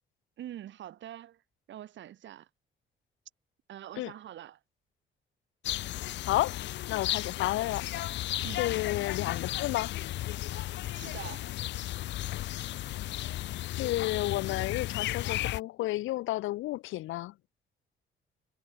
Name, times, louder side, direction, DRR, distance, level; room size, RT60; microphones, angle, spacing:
voice 1, 0.4-1.4 1.7-2.5 3.7-4.6 8.4-8.7 10.9-11.5, right 12 dB, 70° right, 1.3 m, -44 dB
sound 1, 5.6-15.6, left 15 dB, 65° left, 0.4 m, -34 dB
voice 2, 6.3-6.6 6.9-7.9 8.6-9.9 13.8-17.3, left 17 dB, 90° left, 0.9 m, -31 dB
cardioid pair, 90°, 20 cm